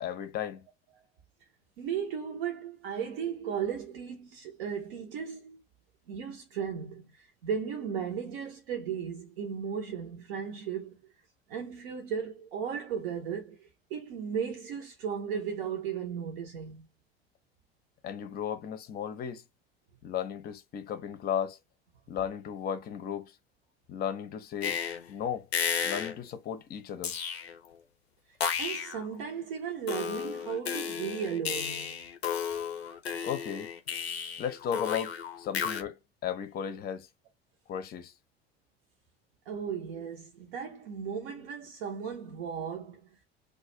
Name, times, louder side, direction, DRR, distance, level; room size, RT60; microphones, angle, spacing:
voice 1, 0.0-0.6 18.0-19.4 20.0-21.6 22.1-23.3 23.9-24.8 25.1-25.5 25.8-27.2 33.2-33.7 34.4-37.1 37.7-38.1, left 8 dB, 30° left, 0.6 m, -35 dB
voice 2, 1.8-5.6 6.1-7.1 7.4-11.1 11.5-16.8 28.6-32.0 39.5-43.1, right 7 dB, 60° right, 0.7 m, -36 dB
sound 1, 24.6-25.1 25.5-26.2 27.0-27.7 28.4-29.1 29.9-35.8, left 7 dB, 80° left, 0.5 m, -33 dB
2.3 x 2.2 x 3.0 m
figure-of-eight pair, 70°, 31 cm